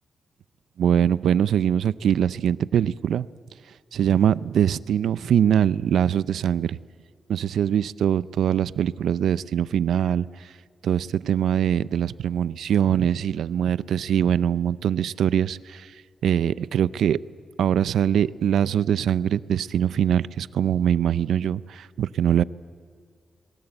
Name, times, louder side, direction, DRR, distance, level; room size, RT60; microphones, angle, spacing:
voice 1, 0.8-3.3 3.9-6.8 7.3-10.3 10.8-15.9 16.2-17.2 17.6-22.4, right 9 dB, 90° right, 17 dB, 0.5 m, -22 dB
22.0 x 20.0 x 7.9 m, 2.1 s
cardioid pair, 90°, 0 cm